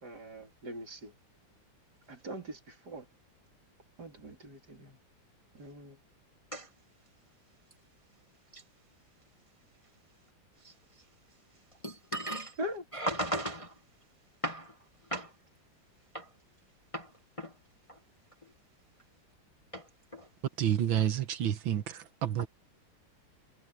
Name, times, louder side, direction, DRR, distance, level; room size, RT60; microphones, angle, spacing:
voice 1, 0.0-1.1 2.1-3.1 4.0-5.0 5.5-6.0 12.6-12.8, equal, 55° right, 4.4 m, -42 dB
voice 2, 11.8-12.6 12.9-13.7 14.4-14.8 15.1-15.3 16.1-16.3 16.9-17.1 17.4-17.5 17.9-18.0 19.7-20.3, right 1 dB, 20° left, 1.4 m, -36 dB
voice 3, 20.6-22.5, right 10 dB, 85° right, 2.0 m, -29 dB
omnidirectional pair, 2.1 m